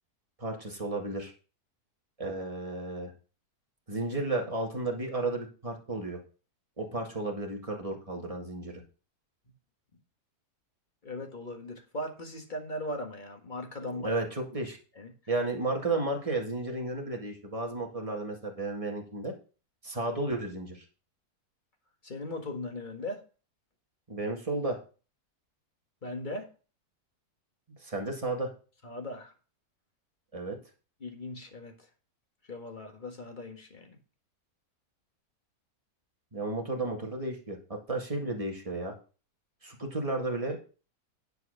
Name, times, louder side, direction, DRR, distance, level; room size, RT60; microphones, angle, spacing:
voice 1, 0.4-1.3 2.2-3.1 3.9-6.2 6.8-8.7 13.8-14.8 15.3-19.3 19.8-20.8 24.1-24.8 27.8-28.5 30.3-30.6 36.3-38.9 39.6-40.6, right 2 dB, 20° right, 1 dB, 2.0 m, -33 dB
voice 2, 11.0-14.1 15.0-15.1 22.0-23.2 26.0-26.5 28.8-29.3 31.0-31.7 32.5-34.0, left 1 dB, 30° left, 4 dB, 1.7 m, -38 dB
10.5 x 4.8 x 6.5 m, 0.36 s
omnidirectional pair, 1.6 m